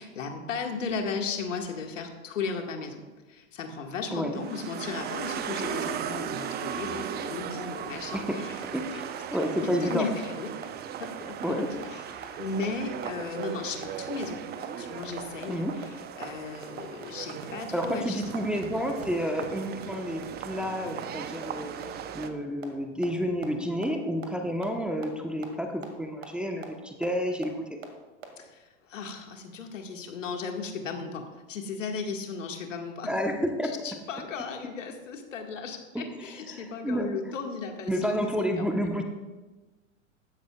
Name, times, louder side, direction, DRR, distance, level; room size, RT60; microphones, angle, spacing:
voice 1, 0.0-3.0 3.3-8.6 8.9-9.0 9.5-10.5 11.0-11.7 11.9-14.4 14.8-18.5 28.4-33.1 33.6-38.7, left 4 dB, 70° left, 3 dB, 1.9 m, -36 dB
voice 2, 4.1-4.4 8.1-8.4 8.7-10.1 11.4-11.7 15.5-15.8 17.7-21.7 22.1-27.8 33.1-33.7 35.9-36.0 36.5-37.1 37.9-39.0, equal, ahead, 3 dB, 1.1 m, -30 dB
sound 1, 4.3-22.3, right 8 dB, 25° right, 0.8 m, -37 dB
sound 2, 8.6-8.7 9.0-9.1 9.4-9.5 9.8-9.9 10.2-10.3 10.6-10.7 11.0-11.1 11.4-11.5 11.8-11.9 12.2-12.3 12.6-12.7 13.0-13.1 13.4-13.5 13.8-13.9 14.2-14.3 14.6-14.7 15.0-15.1 15.4-15.5 15.8-15.9 16.2-16.3 16.6-16.7 17.0-17.1 17.4-17.5 17.8-17.9 18.2-18.3 18.6-18.7 19.0-19.1 19.4-19.5 19.8-19.9 20.2-20.3 20.6-20.7 21.0-21.1 21.4-21.5 21.8-21.9 22.2-22.3 22.6-22.7 23.0-23.1 23.4-23.5 23.8-23.9 24.2-24.3 24.6-24.7 25.0-25.1 25.4-25.5 25.8-25.9 26.2-26.3 26.6-26.7 27.0-27.1 27.4-27.5 27.8-27.9 28.2-28.3, right 6 dB, 75° right, 2.3 m, -40 dB
16.5 x 13.0 x 2.4 m, 1.2 s
figure-of-eight pair, 95°, 39 cm